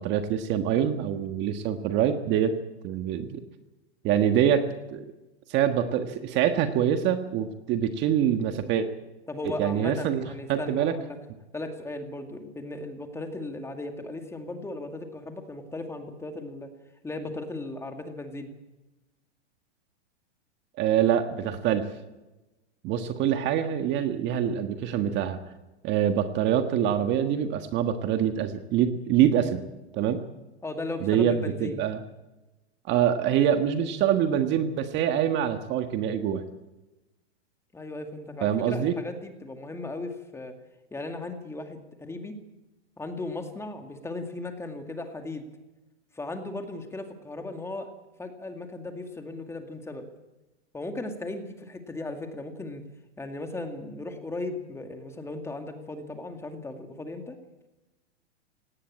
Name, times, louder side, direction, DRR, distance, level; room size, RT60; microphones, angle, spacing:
voice 1, 0.0-2.5 2.8-3.4 4.0-5.0 5.5-8.9 9.6-10.9 20.8-21.9 22.8-25.4 25.8-29.6 29.9-30.2 31.0-32.0 32.9-36.4 38.4-38.9, right 9 dB, 30° right, 7 dB, 1.6 m, -25 dB
voice 2, 9.3-11.2 11.5-16.7 17.0-18.5 30.6-31.8 37.7-40.5 40.9-42.4 43.0-45.4 46.1-47.9 48.2-50.0 50.7-52.8 53.2-57.4, left 2 dB, 10° left, 5 dB, 2.2 m, -36 dB
18.5 x 17.5 x 8.7 m, 1.0 s
hypercardioid pair, 140°, 34 cm